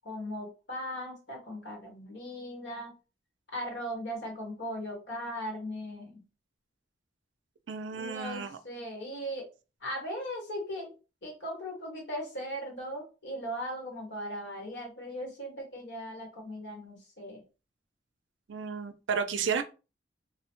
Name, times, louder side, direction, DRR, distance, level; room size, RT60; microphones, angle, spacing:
voice 1, 0.0-2.9 3.5-6.2 7.9-9.5 9.8-10.9 11.2-17.4, equal, 75° left, 1.3 m, -38 dB
voice 2, 7.7-8.6 18.5-19.6, right 6 dB, 85° right, 0.5 m, -32 dB
2.9 x 2.1 x 2.9 m
head